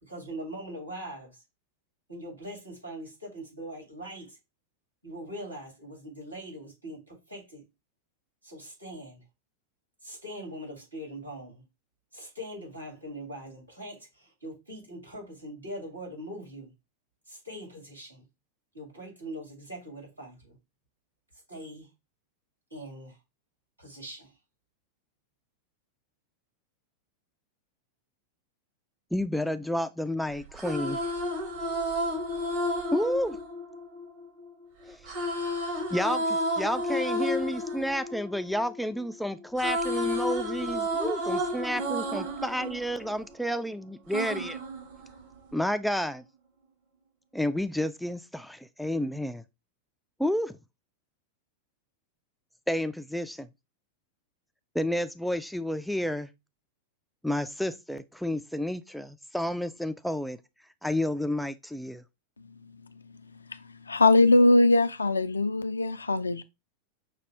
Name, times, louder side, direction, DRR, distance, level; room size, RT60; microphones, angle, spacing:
voice 1, 0.0-1.4 2.1-4.4 5.0-7.6 8.4-9.2 10.0-11.6 12.1-16.7 17.3-18.2 18.7-20.6 21.5-21.9 22.7-23.2 23.8-24.3, right 1 dB, 85° right, 2.3 m, -42 dB
voice 2, 29.1-31.0 32.9-33.4 34.9-35.0 35.9-44.6 45.5-46.2 47.3-49.4 50.2-50.6 52.7-53.5 54.7-56.3 57.2-60.4 60.8-62.0, equal, ahead, 0.3 m, -30 dB
sound 1, 30.4-34.5 35.0-39.1 39.4-43.6 44.1-45.6, equal, 50° right, 1.6 m, -31 dB
voice 3, 63.9-66.4, left 2 dB, 75° left, 0.4 m, -21 dB
6.1 x 2.3 x 3.4 m
figure-of-eight pair, 90°, 0 cm